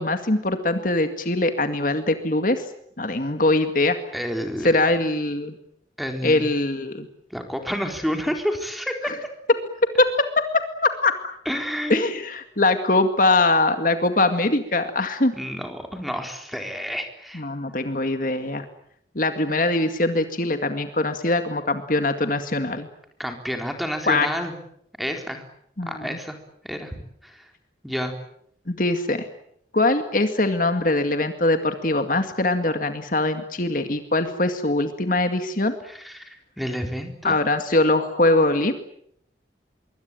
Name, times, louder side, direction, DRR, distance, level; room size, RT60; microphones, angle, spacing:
voice 1, 0.0-2.6 3.0-4.0 4.6-5.6 6.2-7.1 9.0-9.1 10.0-10.4 10.8-11.3 11.9-15.3 17.3-18.6 19.2-22.9 24.1-24.3 25.8-26.2 28.7-29.3 29.7-35.8 37.2-38.7, left 2 dB, 45° left, 7 dB, 2.1 m, -22 dB
voice 2, 4.1-4.8 6.0-6.4 7.3-9.1 11.5-12.0 15.3-17.4 23.2-24.5 25.0-25.4 25.9-26.4 26.6-27.5 27.8-28.1 35.8-37.4, equal, ahead, 4 dB, 4.1 m, -29 dB
25.0 x 23.5 x 9.0 m, 0.71 s
head